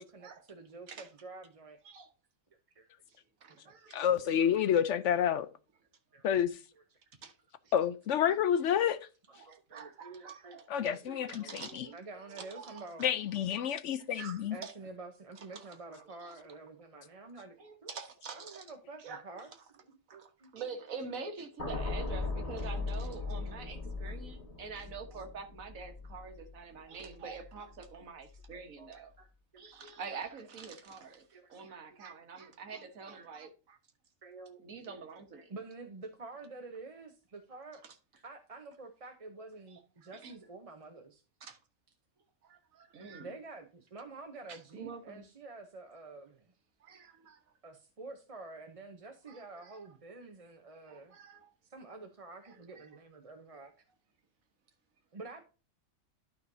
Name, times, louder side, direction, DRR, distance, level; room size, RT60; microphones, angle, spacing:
voice 1, 0.0-1.8 2.8-3.2 3.6-3.7 4.2-4.3 6.1-6.2 6.7-6.8 8.1-8.4 9.4-13.1 13.9-14.1 14.5-17.9 18.3-19.9 20.1-20.5 26.4-26.5 28.5-29.3 29.9-30.0 30.7-31.0 31.3-31.8 33.1-33.3 34.2-34.6 34.9-35.0 35.3-37.8 38.1-41.2 43.2-46.4 47.6-51.2 51.7-53.7 55.1-55.4, right 3 dB, 30° right, 0.8 m, -49 dB
voice 2, 3.4-4.1 7.2-7.4 9.3-10.9 11.3-11.9 12.4-13.1 14.1-14.7 15.5-16.4 17.6-18.7 19.0-19.5 20.1-29.1 29.6-33.8 34.6-35.6 37.8-38.0 39.7-40.4 41.4-41.6 42.4-43.4 44.5-45.2 46.8-47.4 49.3-49.8 50.9-51.5 52.4-52.9, right 5 dB, 90° right, 1.7 m, -46 dB
voice 3, 3.9-5.5 6.2-6.6 7.7-9.0 10.7-11.9 13.0-14.6, left 9 dB, 70° left, 0.8 m, -29 dB
sound 1, 21.6-27.9 28.3-28.5, left 3 dB, 30° left, 1.7 m, -39 dB
12.5 x 5.3 x 2.6 m
omnidirectional pair, 1.4 m